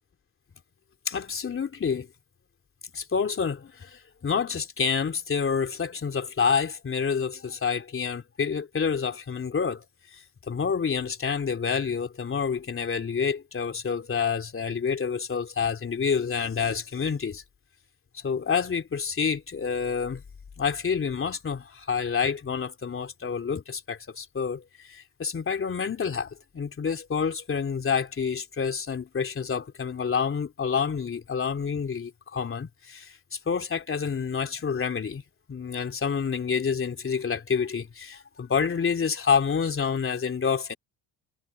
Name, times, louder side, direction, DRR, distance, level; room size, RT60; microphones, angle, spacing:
voice 1, 1.0-2.1 2.9-9.8 10.1-17.4 18.1-20.2 20.6-35.2 35.5-40.7, left 6 dB, 35° left, 3.3 m, -28 dB
cardioid pair, 95°, 38 cm